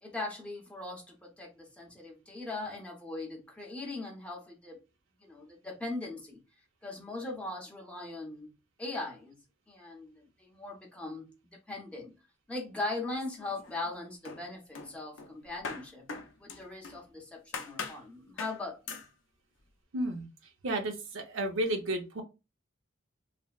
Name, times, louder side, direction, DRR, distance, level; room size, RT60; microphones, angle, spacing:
voice 1, 0.0-4.8 5.2-6.4 6.8-8.5 8.8-12.1 12.5-16.1 16.4-19.0, left 2 dB, 5° left, 0.7 m, -40 dB
sound 1, 13.1-13.9 14.2-17.0 17.5-18.0 18.4-18.6 18.9-19.1, left 4 dB, 75° left, 0.5 m, -42 dB
voice 2, 19.9-20.3 20.6-22.2, right 1 dB, 90° right, 0.6 m, -32 dB
3.2 x 2.0 x 2.3 m
head